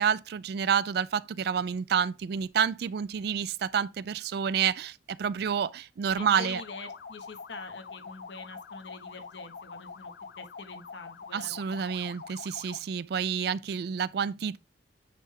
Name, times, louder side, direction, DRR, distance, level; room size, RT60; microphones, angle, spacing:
voice 1, 0.0-6.6 11.3-14.6, right 7 dB, 55° right, 0.3 m, -29 dB
voice 2, 6.1-11.9, left 3 dB, 75° left, 1.3 m, -45 dB
sound 1, 6.1-12.9, left 5 dB, 55° left, 0.4 m, -45 dB
9.1 x 3.4 x 3.7 m
head